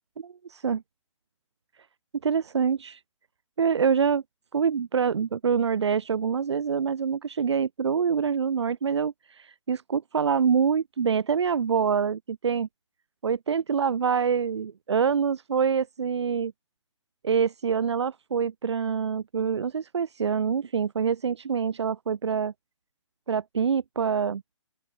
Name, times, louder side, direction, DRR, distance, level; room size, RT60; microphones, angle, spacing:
voice 1, 0.2-0.8 2.2-3.0 3.6-4.2 4.5-12.7 13.2-16.5 17.2-22.5 23.3-24.4, right 6 dB, 60° right, 2.6 m, -25 dB
open air
hypercardioid pair, 180°, 16 cm